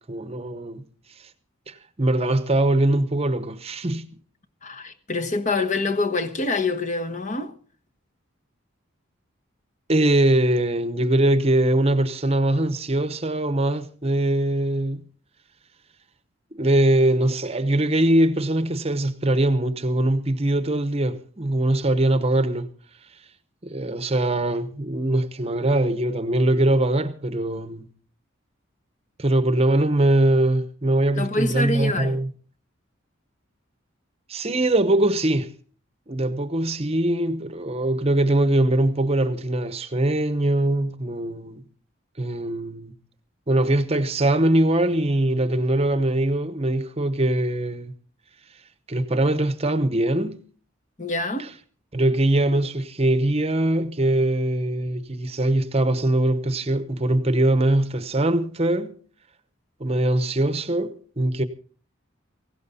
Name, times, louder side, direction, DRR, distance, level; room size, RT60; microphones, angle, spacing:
voice 1, 0.1-0.8 1.7-4.1 9.9-15.0 16.5-22.7 23.6-27.9 29.2-32.3 34.3-35.5 36.1-41.6 42.2-42.9 43.5-47.9 48.9-50.4 51.4-51.5 51.9-58.9 59.8-61.4, right 1 dB, 30° right, 0.9 m, -22 dB
voice 2, 4.6-7.5 31.2-32.1 51.0-51.5, left 2 dB, 35° left, 1.2 m, -25 dB
17.5 x 16.0 x 4.2 m
head